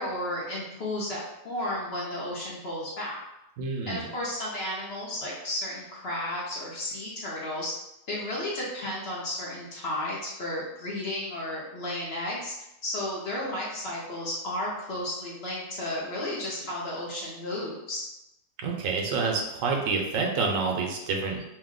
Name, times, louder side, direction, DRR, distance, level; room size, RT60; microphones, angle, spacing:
voice 1, 0.0-3.2 3.9-7.7 8.1-12.5 12.8-18.1, left 1 dB, 55° left, -5 dB, 0.9 m, -33 dB
voice 2, 3.6-4.1 18.6-21.4, right 4 dB, 85° right, 1 dB, 1.0 m, -28 dB
2.7 x 2.1 x 3.6 m, 0.88 s
omnidirectional pair, 1.4 m